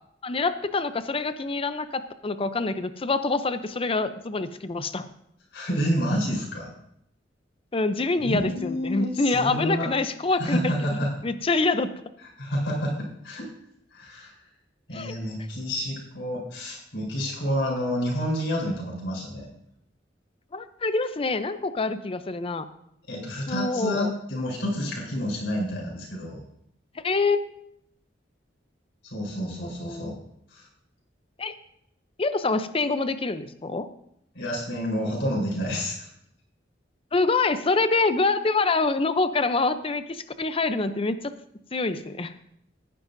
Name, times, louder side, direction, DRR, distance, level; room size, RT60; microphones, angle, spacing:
voice 1, 0.2-5.1 7.7-11.9 14.9-15.2 20.5-22.7 23.5-24.1 26.9-27.4 29.2-29.5 29.8-30.1 31.4-31.6 32.2-33.9 37.1-41.3 41.7-42.3, left 3 dB, 30° left, 11 dB, 0.6 m, -26 dB
voice 2, 5.5-6.7 8.2-9.9 10.4-11.1 12.4-13.4 13.9-14.3 14.9-19.5 23.1-26.4 29.0-30.2 30.5-30.7 34.3-36.1, equal, 80° left, -3 dB, 4.2 m, -29 dB
18.0 x 10.0 x 2.7 m, 0.73 s
head